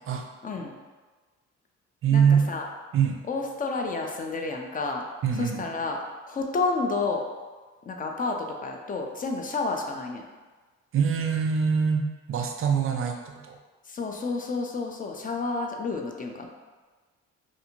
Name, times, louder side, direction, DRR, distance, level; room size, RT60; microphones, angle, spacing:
voice 1, 0.4-0.8 2.1-2.7 3.3-5.0 5.3-6.0 6.3-7.2 7.9-10.2 13.9-16.5, left 3 dB, 30° left, 2 dB, 0.4 m, -30 dB
voice 2, 2.0-2.5 2.9-3.2 5.2-5.7 10.9-13.6, right 7 dB, 45° right, 3 dB, 0.4 m, -24 dB
2.5 x 2.5 x 2.9 m, 1.3 s
cardioid pair, 90°, 30 cm